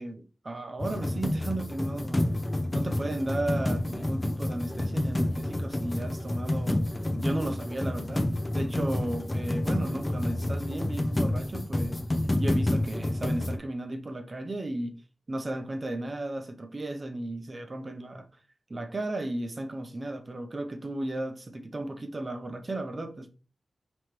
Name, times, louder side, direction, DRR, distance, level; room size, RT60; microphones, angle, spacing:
voice 1, 0.0-2.3 2.7-6.8 7.1-12.0 12.4-15.0 15.3-18.3 18.7-23.3, right 1 dB, 35° right, 0.7 m, -34 dB
sound 1, 0.8-13.6, left 1 dB, 25° left, 0.6 m, -29 dB
5.0 x 3.1 x 3.0 m
wide cardioid pair, 105°, 0 cm